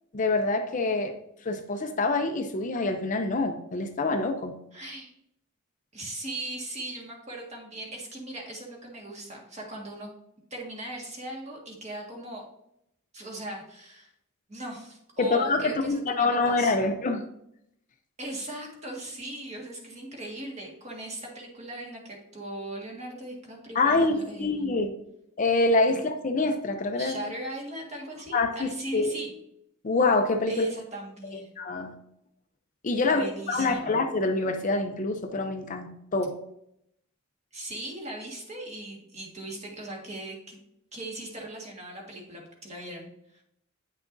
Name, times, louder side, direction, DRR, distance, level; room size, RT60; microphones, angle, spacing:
voice 1, 0.1-1.2 1.4-4.5 15.2-17.2 23.8-25.0 25.4-27.2 28.3-29.2 29.8-30.7 31.6-31.9 32.8-36.4, left 3 dB, 40° left, 6 dB, 0.5 m, -26 dB
voice 2, 4.7-5.1 5.9-10.1 10.5-12.4 13.1-14.1 14.5-16.9 18.2-24.8 25.9-26.0 27.0-29.3 30.5-31.5 33.1-34.0 37.5-40.6 40.9-43.4, right 1 dB, 30° right, -1 dB, 1.7 m, -39 dB
9.1 x 5.9 x 2.6 m, 0.77 s
head